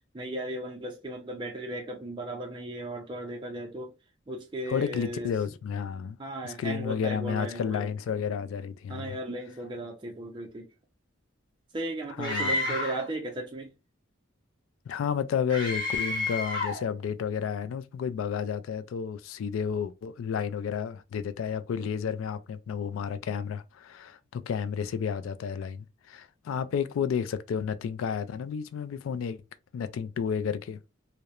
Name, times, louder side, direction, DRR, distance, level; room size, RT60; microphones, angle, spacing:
voice 1, 0.1-3.9 4.3-5.3 6.2-7.9 8.9-10.7 11.7-13.7, right 1 dB, 25° right, 0.4 m, -36 dB
voice 2, 4.7-6.2 6.4-9.2 12.2-12.8 14.9-29.4 29.7-30.8, left 7 dB, 85° left, 0.3 m, -31 dB
Screaming, 12.2-13.1 15.5-16.9, left 2 dB, 20° left, 0.9 m, -30 dB
2.8 x 2.0 x 2.3 m
head